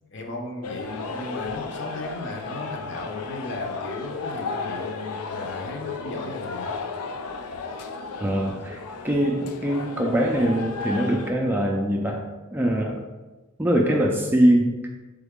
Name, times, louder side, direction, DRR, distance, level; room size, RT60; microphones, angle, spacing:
voice 1, 0.1-6.7, left 2 dB, 55° left, 1 dB, 0.8 m, -35 dB
sound 1, 0.6-11.3, left 4 dB, 90° left, 0.4 m, -34 dB
voice 2, 8.2-13.0 13.6-14.8, right 1 dB, 10° right, 1 dB, 0.3 m, -23 dB
3.9 x 3.5 x 3.6 m, 1.2 s
head